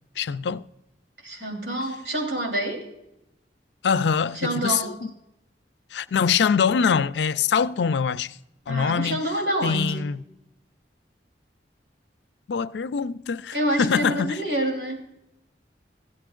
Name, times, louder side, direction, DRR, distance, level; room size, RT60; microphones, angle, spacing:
voice 1, 0.2-0.6 3.8-4.8 5.9-8.3 8.7-9.2 9.6-10.2 12.5-14.4, left 6 dB, 75° left, 0.4 m, -23 dB
voice 2, 1.2-2.9 4.3-5.0 8.7-10.1 13.5-15.1, right 1 dB, 85° right, 3.3 m, -27 dB
16.0 x 13.0 x 2.5 m
head